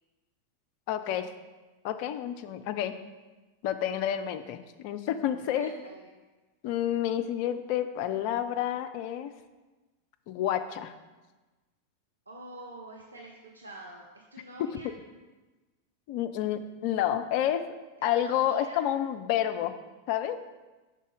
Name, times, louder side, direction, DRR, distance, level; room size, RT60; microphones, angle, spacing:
voice 1, 0.9-1.3 1.8-2.9 3.6-5.7 6.6-9.3 10.3-10.9 14.6-14.7 16.1-17.6 18.0-19.7 20.1-20.4, left 11 dB, 45° left, 9 dB, 0.4 m, -29 dB
voice 2, 5.6-6.1 12.3-15.0 18.0-18.9, right 1 dB, 80° right, -1 dB, 0.5 m, -46 dB
5.4 x 3.9 x 4.8 m, 1.2 s
figure-of-eight pair, 90°, 0 cm